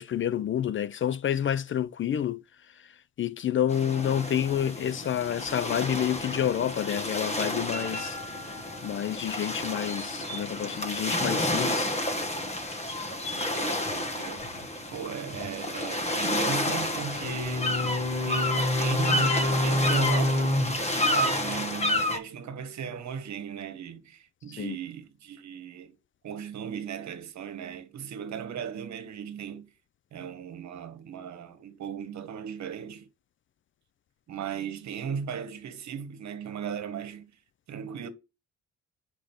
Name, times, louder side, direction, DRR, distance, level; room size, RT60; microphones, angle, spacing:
voice 1, 0.0-2.4 2.8-2.9 3.2-8.2 8.4-8.5 8.8-11.9 24.6-24.8, left 10 dB, 40° left, 0.4 m, -29 dB
sound 1, 3.7-22.2, left 1 dB, 20° left, 1.4 m, -29 dB
voice 2, 13.5-14.5 14.9-17.8 18.3-25.9 26.2-29.6 30.1-33.1 34.3-37.3 37.7-38.1, right 7 dB, 65° right, 1.3 m, -37 dB
5.1 x 5.0 x 5.8 m
cardioid pair, 90°, 30 cm